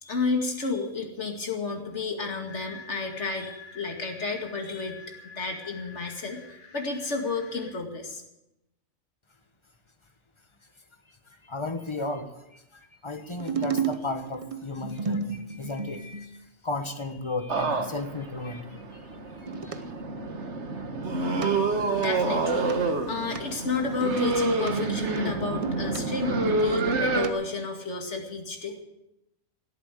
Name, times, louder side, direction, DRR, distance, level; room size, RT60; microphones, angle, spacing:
voice 1, 0.0-8.2 21.0-28.8, left 4 dB, 55° left, 3 dB, 2.5 m, -32 dB
sound 1, 2.5-7.7, left 4 dB, 80° left, 2.3 m, -48 dB
voice 2, 11.3-19.0 19.4-19.8, left 3 dB, 20° left, 8 dB, 1.2 m, -35 dB
sound 2, 13.3-16.4 19.5-19.8 21.4-21.5 21.9-22.1 22.7-22.8 23.3-23.4 24.0-24.7 25.2-26.0 26.4-27.3 27.6-27.7, right 5 dB, 30° right, 0.8 m, -33 dB
sound 3, 17.5-27.3, right 3 dB, 55° right, 1.6 m, -27 dB
17.5 x 8.7 x 8.4 m, 0.91 s
omnidirectional pair, 1.4 m